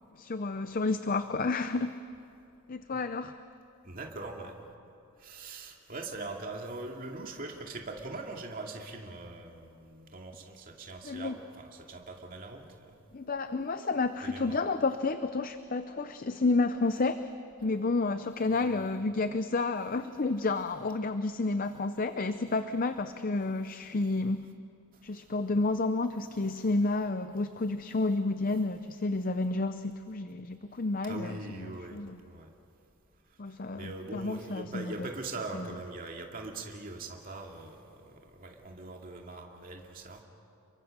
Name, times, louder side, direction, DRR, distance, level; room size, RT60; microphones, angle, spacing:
voice 1, 0.1-1.9 2.7-3.3 11.0-11.4 13.1-17.3 17.6-24.5 25.0-32.2 33.4-35.1 35.5-35.7, left 3 dB, 40° left, 10 dB, 0.6 m, -30 dB
voice 2, 3.8-4.6 5.2-13.0 14.2-14.6 18.5-18.7 31.0-32.0 32.3-32.5 33.5-40.2, right 2 dB, 40° right, 1 dB, 2.4 m, -42 dB
29.5 x 23.5 x 6.6 m, 2.5 s
head